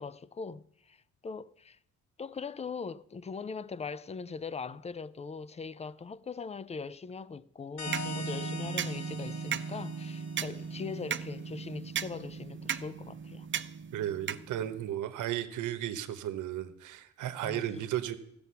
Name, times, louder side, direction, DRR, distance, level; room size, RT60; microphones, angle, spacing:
voice 1, 0.0-1.8 2.2-13.5 17.4-17.8, left 5 dB, 20° left, 0.4 m, -41 dB
sound 1, 7.8-11.2, left 5 dB, 60° left, 1.3 m, -43 dB
sound 2, 7.8-14.9, right 7 dB, 40° right, 0.5 m, -37 dB
voice 2, 13.9-18.2, right 11 dB, 80° right, 1.0 m, -34 dB
15.0 x 7.0 x 5.6 m
cardioid pair, 90°, 30 cm